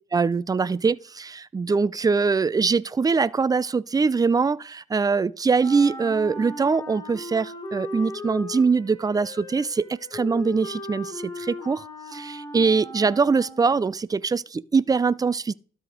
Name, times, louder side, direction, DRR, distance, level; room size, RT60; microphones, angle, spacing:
voice 1, 0.1-9.8 10.1-11.8 12.1-15.5, right 4 dB, 20° right, 0.4 m, -23 dB
Wind instrument woodwind instrument, 5.6-13.9, left 1 dB, 20° left, 3.2 m, -38 dB
12.5 x 4.9 x 5.1 m
cardioid pair, 90°, 20 cm